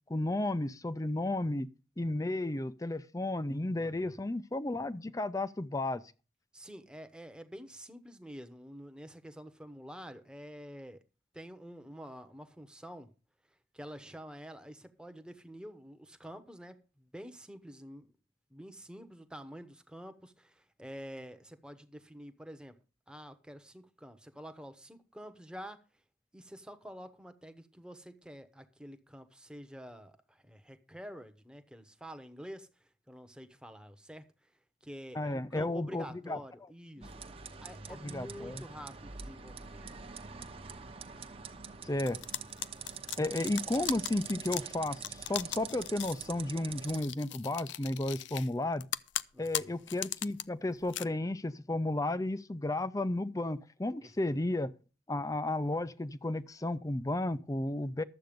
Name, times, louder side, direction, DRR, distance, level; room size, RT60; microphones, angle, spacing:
voice 1, 0.1-1.7 2.0-6.0 35.2-36.4 37.0-37.1 38.0-38.6 41.8-42.2 43.2-48.9 49.4-54.7 55.1-58.0, left 2 dB, 20° left, 0.5 m, -33 dB
voice 2, 3.7-4.2 6.5-11.0 11.3-13.1 13.7-18.1 18.5-22.8 23.1-25.8 26.3-37.2 37.6-40.1 49.3-49.8 54.0-54.4, equal, 5° right, 0.9 m, -48 dB
sound 1, 37.0-47.0, right 6 dB, 30° right, 0.9 m, -45 dB
sound 2, 42.1-46.2 46.8-48.5 48.8-50.4 50.8-51.0, left 13 dB, 80° left, 0.5 m, -38 dB
12.0 x 7.9 x 5.1 m
head